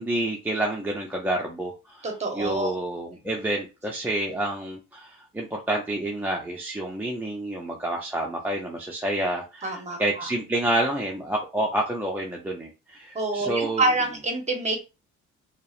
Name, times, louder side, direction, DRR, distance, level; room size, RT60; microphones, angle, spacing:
voice 1, 0.0-2.1 2.3-13.8, right 1 dB, 5° right, -2 dB, 0.4 m, -28 dB
voice 2, 2.0-2.7 9.6-10.3 13.1-14.8, right 2 dB, 20° right, 3 dB, 0.8 m, -27 dB
2.6 x 2.0 x 2.4 m, 0.28 s
cardioid pair, 90°, 30 cm